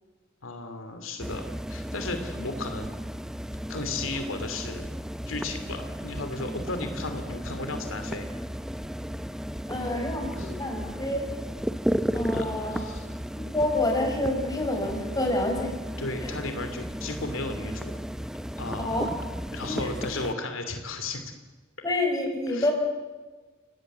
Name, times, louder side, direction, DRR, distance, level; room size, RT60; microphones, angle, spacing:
voice 1, 0.4-2.9 3.7-4.9 5.3-8.3 10.4-10.5 12.3-13.2 16.0-18.0 18.6-19.1 19.5-21.3 22.5-22.7, left 2 dB, 90° left, 7 dB, 2.8 m, -35 dB
sound 1, 1.2-20.3, equal, 5° right, 0.7 m, -34 dB
voice 2, 9.6-11.3 12.1-12.8 13.3-15.7 16.2-16.4 18.8-19.1 19.6-20.2 21.8-22.7, left 1 dB, 20° left, 2 dB, 5.8 m, -28 dB
29.5 x 18.0 x 8.1 m, 1.3 s
head